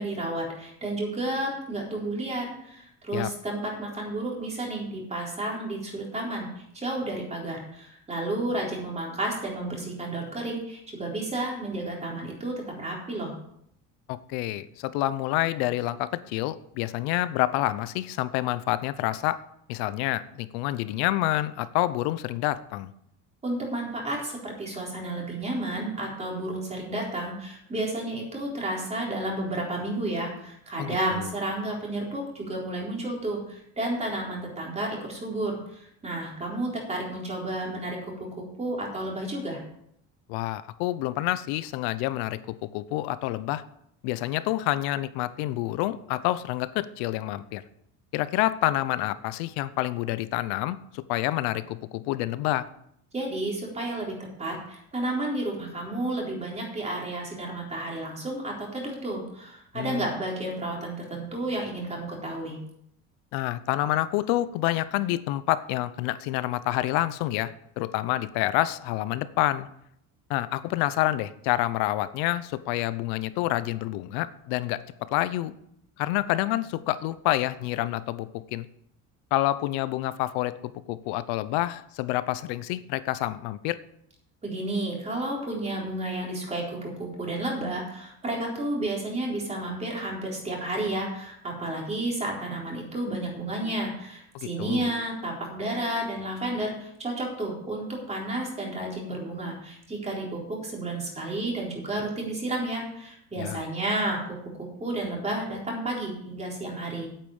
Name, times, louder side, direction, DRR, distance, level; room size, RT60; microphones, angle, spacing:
voice 1, 0.0-13.3 23.4-39.6 53.1-62.6 84.4-104.4 104.8-107.1, right 1 dB, 20° right, -2 dB, 3.9 m, -31 dB
voice 2, 14.1-19.4 19.7-22.9 30.8-31.3 40.3-43.6 44.0-47.6 48.1-52.7 59.7-60.1 63.3-69.7 70.3-74.8 75.1-75.5 76.0-78.7 79.3-83.8 94.3-94.9 103.4-103.6, left 15 dB, 85° left, 15 dB, 0.9 m, -28 dB
8.9 x 8.5 x 7.1 m, 0.73 s
cardioid pair, 140°, 37 cm